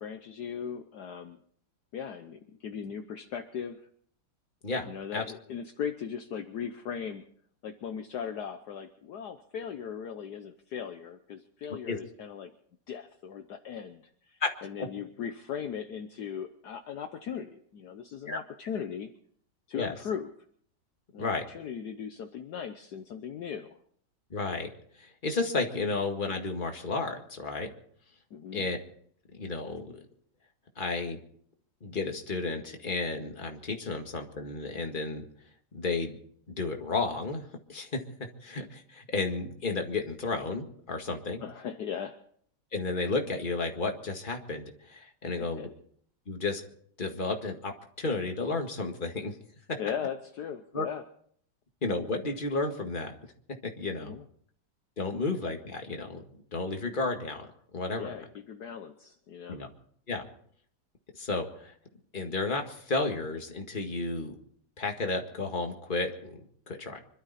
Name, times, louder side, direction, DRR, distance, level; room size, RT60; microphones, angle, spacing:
voice 1, 0.0-1.4 1.9-3.8 4.9-7.3 7.6-12.5 12.9-19.1 19.7-20.3 21.1-23.8 28.3-28.7 41.4-42.2 45.2-45.7 49.8-51.0 53.9-54.2 58.0-59.6, left 7 dB, 65° left, 7 dB, 1.3 m, -38 dB
voice 2, 4.6-5.2 11.9-12.0 14.4-14.5 14.8-14.9 18.3-18.4 19.8-19.9 21.2-21.4 24.3-24.7 25.0-27.7 28.5-28.8 29.3-30.0 30.8-31.2 31.8-35.2 35.7-36.2 36.6-38.0 38.4-41.4 42.7-45.7 46.3-46.6 47.0-47.7 48.0-49.4 49.7-49.8 50.7-50.9 51.8-53.1 53.6-54.2 55.0-56.2 56.5-57.5 57.7-58.1 59.5-59.7 60.1-60.2 61.1-61.7 62.1-64.4 64.8-67.0, left 3 dB, 25° left, 3 dB, 1.9 m, -32 dB
25.5 x 12.5 x 4.2 m, 0.62 s
omnidirectional pair, 2.0 m